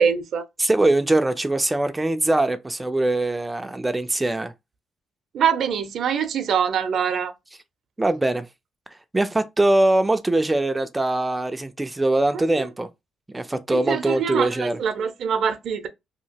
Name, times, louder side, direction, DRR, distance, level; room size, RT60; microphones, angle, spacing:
voice 1, 0.0-0.4 5.3-7.3 12.3-12.7 13.7-15.9, right 7 dB, 65° right, 0.5 m, -24 dB
voice 2, 0.6-4.5 8.0-8.5 9.1-12.9 13.3-14.8, right 2 dB, 15° right, 0.4 m, -22 dB
2.8 x 2.8 x 2.8 m
cardioid pair, 90°, 0 cm